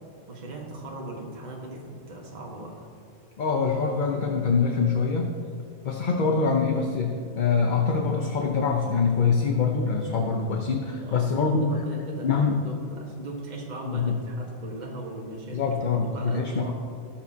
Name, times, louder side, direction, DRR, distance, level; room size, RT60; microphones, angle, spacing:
voice 1, 0.3-2.9 11.0-15.6 16.1-16.7, right 2 dB, 35° right, -2 dB, 1.4 m, -38 dB
voice 2, 3.4-5.4 5.8-11.8 12.2-12.6 13.9-14.2 15.5-16.7, left 5 dB, 45° left, 2 dB, 0.8 m, -24 dB
17.0 x 7.1 x 2.8 m, 2.6 s
omnidirectional pair, 1.3 m